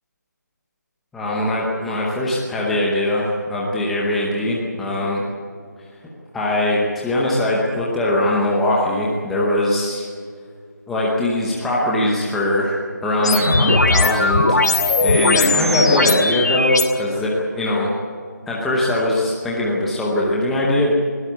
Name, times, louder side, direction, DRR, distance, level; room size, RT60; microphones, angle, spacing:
voice 1, 1.1-5.2 6.3-10.1 10.9-17.9 18.5-20.9, left 1 dB, ahead, -5 dB, 0.8 m, -21 dB
sound 1, 13.2-16.8, left 2 dB, 65° left, 2.8 m, -18 dB
21.0 x 18.0 x 8.1 m, 2.1 s
figure-of-eight pair, 175°, 10 cm